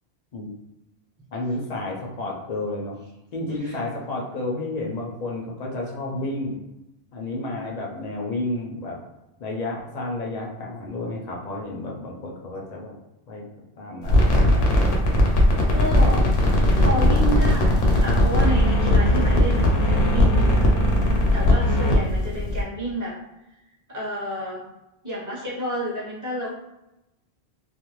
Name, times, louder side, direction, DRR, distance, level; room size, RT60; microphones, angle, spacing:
voice 1, 1.3-3.0 3.3-6.6 7.1-9.0 9.4-13.0 13.3-13.5 13.8-15.2, left 2 dB, 50° left, -2 dB, 0.5 m, -31 dB
sound 1, 14.0-22.6, left 1 dB, 75° left, 0.9 m, -18 dB
voice 2, 15.7-16.2 16.7-23.2 23.9-24.6 25.0-26.5, equal, 20° right, -7 dB, 0.8 m, -30 dB
2.5 x 2.0 x 3.0 m, 0.92 s
omnidirectional pair, 1.1 m